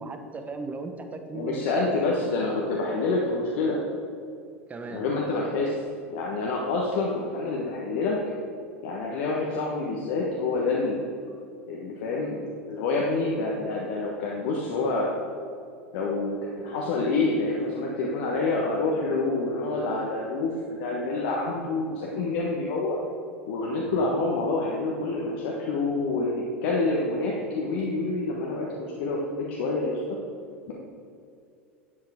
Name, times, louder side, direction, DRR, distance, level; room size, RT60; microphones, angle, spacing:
voice 1, 0.0-2.4 4.7-5.0 23.9-24.1, right 3 dB, 20° right, 6 dB, 1.1 m, -37 dB
voice 2, 1.3-3.8 4.9-5.7 6.1-8.2 8.8-11.0 11.7-15.1 15.9-23.0 23.5-28.7 29.0-30.0 30.7-30.8, left 3 dB, 55° left, -3 dB, 1.3 m, -27 dB
11.0 x 8.0 x 3.7 m, 2.4 s
figure-of-eight pair, 80°, 7 cm